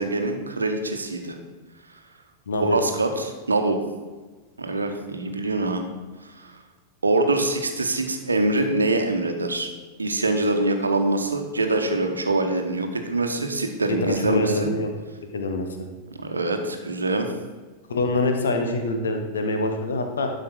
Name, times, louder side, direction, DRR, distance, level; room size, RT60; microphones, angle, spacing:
voice 1, 0.0-1.4 2.6-3.8 4.6-5.8 7.0-9.7 10.0-14.7 16.1-17.3, right 2 dB, 75° right, 5 dB, 1.0 m, -24 dB
voice 2, 2.5-2.8 13.9-14.9 15.3-15.7 17.9-20.3, left 2 dB, 65° left, 5 dB, 1.2 m, -25 dB
12.0 x 5.3 x 4.6 m, 1.3 s
figure-of-eight pair, 90°, 0 cm